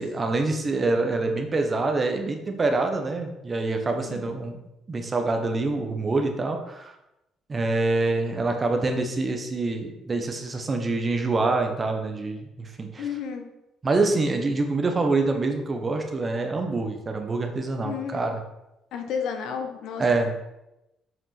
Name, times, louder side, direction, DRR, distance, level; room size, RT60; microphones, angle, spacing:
voice 1, 0.0-4.6 4.9-6.9 7.5-13.1 13.8-18.4 20.0-20.3, right 3 dB, 25° right, 4 dB, 1.2 m, -26 dB
voice 2, 4.0-4.3 13.0-13.4 17.8-18.3 18.9-20.3, left 7 dB, 75° left, 5 dB, 1.3 m, -32 dB
7.6 x 5.3 x 5.9 m, 0.92 s
cardioid pair, 145°, 0 cm